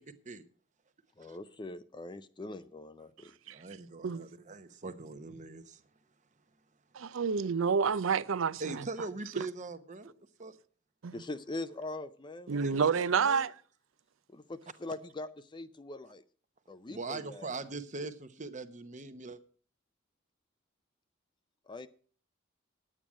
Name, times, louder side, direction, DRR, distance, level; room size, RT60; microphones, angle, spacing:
voice 1, 1.2-3.3 11.1-12.5 14.3-16.2 16.7-17.5 21.7-21.9, left 2 dB, 25° left, 0.5 m, -42 dB
voice 2, 3.5-5.8 8.6-10.1 10.4-10.6 12.5-13.4 16.9-19.4, right 3 dB, 35° right, 1.0 m, -42 dB
voice 3, 6.9-8.8 11.0-11.2 12.5-13.5, right 6 dB, 70° right, 0.5 m, -29 dB
10.0 x 8.9 x 6.1 m
head